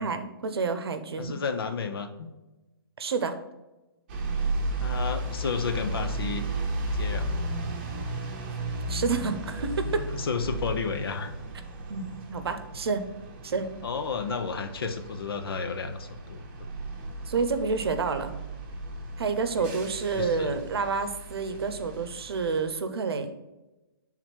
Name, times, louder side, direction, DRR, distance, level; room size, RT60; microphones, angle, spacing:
voice 1, 0.0-1.3 3.0-3.4 8.9-10.1 11.9-13.0 13.4-13.7 17.3-18.3 19.2-23.3, right 4 dB, 80° right, 9 dB, 0.8 m, -29 dB
voice 2, 1.2-2.3 4.8-6.4 6.9-7.3 9.9-11.3 13.8-16.4 19.6-19.7 20.1-20.6, left 5 dB, 70° left, 8 dB, 0.8 m, -32 dB
sound 1, 4.1-22.6, right 1 dB, 25° right, 0.8 m, -34 dB
5.9 x 3.8 x 4.5 m, 1.1 s
hypercardioid pair, 175°, 13 cm